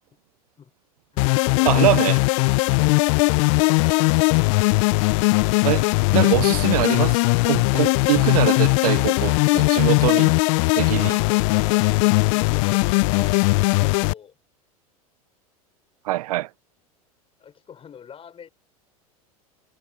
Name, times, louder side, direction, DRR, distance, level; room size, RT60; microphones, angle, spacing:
voice 1, 1.1-1.9 2.7-2.9 3.3-4.9 11.0-14.3 17.4-18.5, left 7 dB, 30° left, 6.1 m, -43 dB
sound 1, 1.2-14.1, left 30 dB, 55° left, 0.4 m, -19 dB
voice 2, 1.6-2.2 5.6-5.9 6.1-10.3 10.7-11.2 16.0-16.5, right 17 dB, 75° right, 0.4 m, -23 dB
hypercardioid pair, 90°, 19 cm